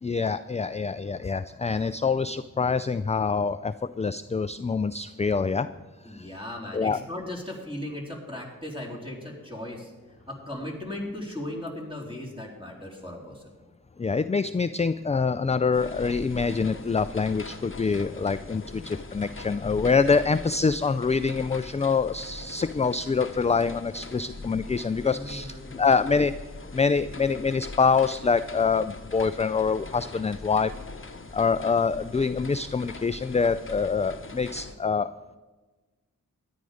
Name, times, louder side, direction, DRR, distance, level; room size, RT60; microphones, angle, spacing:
voice 1, 0.0-5.7 6.1-6.3 6.7-7.0 14.0-26.3 26.7-30.7 31.3-35.1, left 5 dB, 20° left, 13 dB, 0.3 m, -25 dB
voice 2, 6.0-9.9 10.3-13.5 25.1-25.8, left 1 dB, 15° right, -2 dB, 3.7 m, -37 dB
sound 1, 15.7-34.7, left 3 dB, 35° left, 1.0 m, -42 dB
13.5 x 10.5 x 5.0 m, 1.3 s
wide cardioid pair, 50°, 34 cm